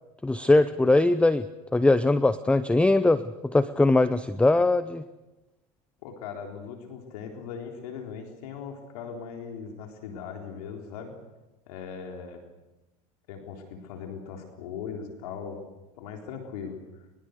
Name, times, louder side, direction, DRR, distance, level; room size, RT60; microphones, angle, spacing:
voice 1, 0.2-1.5 1.7-5.0, left 2 dB, 5° left, 14 dB, 0.7 m, -21 dB
voice 2, 6.0-11.2 11.7-12.4 13.3-15.6 15.9-17.0, left 6 dB, 80° left, 3 dB, 3.9 m, -39 dB
22.5 x 22.5 x 6.7 m, 1.0 s
supercardioid pair, 105°, 19 cm